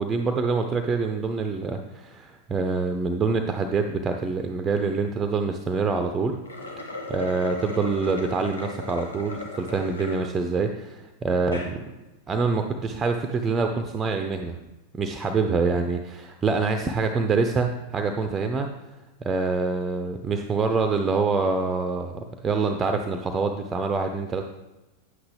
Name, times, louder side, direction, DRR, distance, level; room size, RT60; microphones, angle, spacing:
voice 1, 0.0-6.4 6.8-11.8 12.3-14.6 14.9-18.7 19.2-24.4, right 4 dB, 20° right, 6 dB, 0.6 m, -26 dB
sound 1, 6.3-10.3 10.8-10.9 11.4-11.7, left 2 dB, 75° left, 1.5 m, -37 dB
9.7 x 8.0 x 3.4 m, 1.0 s
figure-of-eight pair, 90°, 0 cm